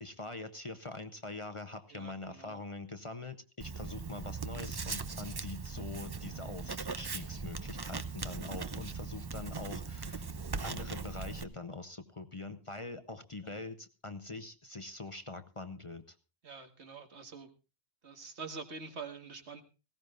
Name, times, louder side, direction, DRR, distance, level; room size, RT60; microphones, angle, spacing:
voice 1, 0.0-10.3 10.6-16.2, left 3 dB, 30° left, 9 dB, 0.9 m, -44 dB
voice 2, 1.9-2.6 13.4-13.7 16.4-17.5 18.0-19.6, right 4 dB, 75° right, 6 dB, 1.9 m, -46 dB
Writing, 3.6-11.4, right 4 dB, 25° right, 0.5 m, -39 dB
19.0 x 16.5 x 2.5 m, 0.30 s
omnidirectional pair, 1.2 m